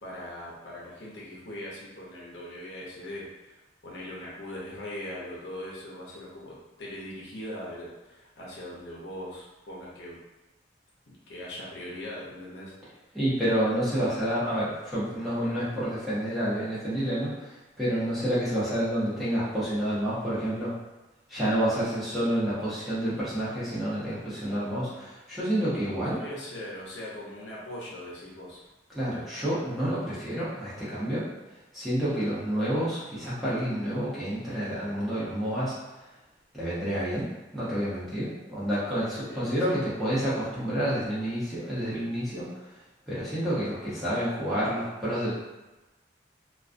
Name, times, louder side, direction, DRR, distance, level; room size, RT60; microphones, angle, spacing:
voice 1, 0.0-10.2 11.1-12.7 26.0-28.6 39.0-39.8, left 1 dB, 70° left, -5 dB, 0.7 m, -40 dB
voice 2, 13.1-20.7 21.3-26.2 28.9-31.3 31.7-35.7 36.5-42.4 43.1-45.3, equal, ahead, -11 dB, 0.7 m, -29 dB
2.3 x 2.3 x 2.5 m, 1.1 s
head